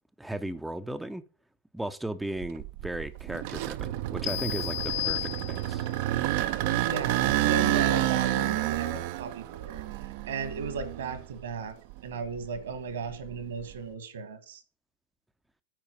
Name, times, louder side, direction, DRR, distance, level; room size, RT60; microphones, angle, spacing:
voice 1, 0.2-1.2 1.7-5.9, right 1 dB, 5° right, 0.6 m, -36 dB
sound 1, 2.4-11.4 11.9-13.7, right 15 dB, 50° right, 0.6 m, -30 dB
sound 2, 4.2-5.9, left 17 dB, 40° left, 0.8 m, -33 dB
voice 2, 6.6-9.8 10.3-11.7 12.0-14.6, right 5 dB, 70° right, 1.8 m, -35 dB
9.0 x 4.8 x 7.6 m
figure-of-eight pair, 95°, 0 cm